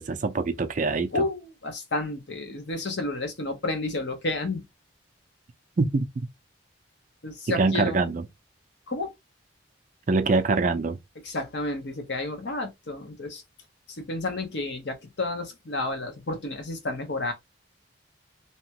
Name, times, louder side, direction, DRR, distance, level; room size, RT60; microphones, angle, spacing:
voice 1, 0.0-1.3 5.8-6.3 7.5-8.3 10.1-11.0, right 3 dB, 40° right, 0.4 m, -24 dB
voice 2, 1.1-4.6 7.2-8.0 8.9-9.1 11.2-13.4 13.9-17.3, left 2 dB, 65° left, 0.9 m, -31 dB
2.8 x 2.2 x 2.8 m
head